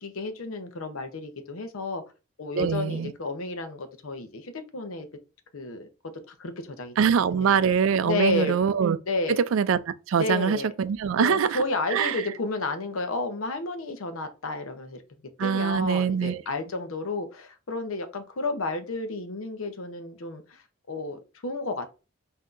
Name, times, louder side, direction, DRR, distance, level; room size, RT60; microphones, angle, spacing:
voice 1, 0.0-2.0 2.4-5.1 5.5-5.9 6.3-6.9 7.3-7.5 8.0-8.6 9.1-9.4 10.2-10.7 11.2-15.0 15.4-20.6 20.9-21.9, left 3 dB, 80° left, 0.7 m, -31 dB
voice 2, 2.5-3.1 7.0-9.0 9.3-11.6 11.9-12.1 15.4-16.4, right 7 dB, 70° right, 0.3 m, -23 dB
5.7 x 2.7 x 2.5 m
head